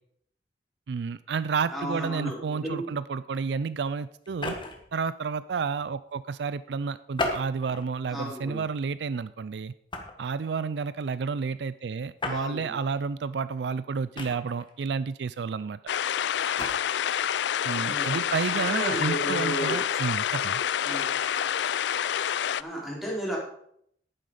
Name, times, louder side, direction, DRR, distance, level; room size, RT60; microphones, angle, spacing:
voice 1, 0.9-4.6 4.9-9.7 10.2-15.8 17.6-20.6, right 5 dB, 70° right, 16 dB, 0.4 m, -31 dB
voice 2, 1.7-2.9 8.1-8.6 12.2-12.7 17.8-18.2 18.5-19.8 20.8-21.2 22.6-23.4, right 1 dB, ahead, -5 dB, 4.6 m, -33 dB
sound 1, 4.2-4.9 7.1-7.9 8.5-8.7 9.9-10.3 12.2-12.4 14.1-14.7 16.4-16.8, left 2 dB, 30° left, 1.6 m, -33 dB
sound 2, 15.9-22.6, left 9 dB, 75° left, 0.4 m, -28 dB
11.0 x 9.4 x 5.0 m, 0.68 s
head